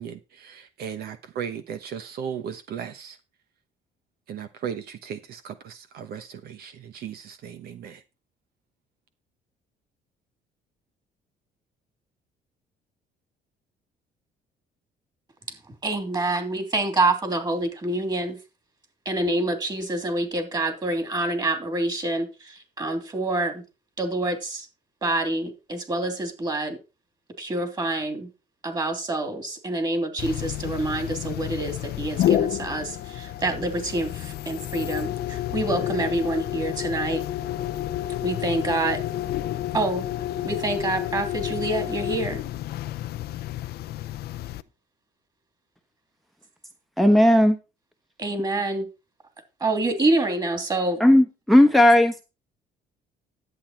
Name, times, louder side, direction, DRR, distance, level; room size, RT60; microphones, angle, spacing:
voice 1, 0.0-3.2 4.3-8.0, right 8 dB, 65° right, 1.0 m, -36 dB
voice 2, 15.8-18.4 19.0-23.6 24.0-24.7 25.0-26.8 27.4-28.3 28.6-37.2 38.2-39.0 39.7-40.0 40.4-42.4 48.2-48.9 49.6-51.0, right 2 dB, 25° right, 3.1 m, -27 dB
sound 1, 30.2-44.6, left 12 dB, 70° left, 0.7 m, -30 dB
voice 3, 47.0-47.6 51.0-52.1, left 1 dB, ahead, 1.1 m, -15 dB
11.5 x 8.1 x 4.4 m
cardioid pair, 110°, 17 cm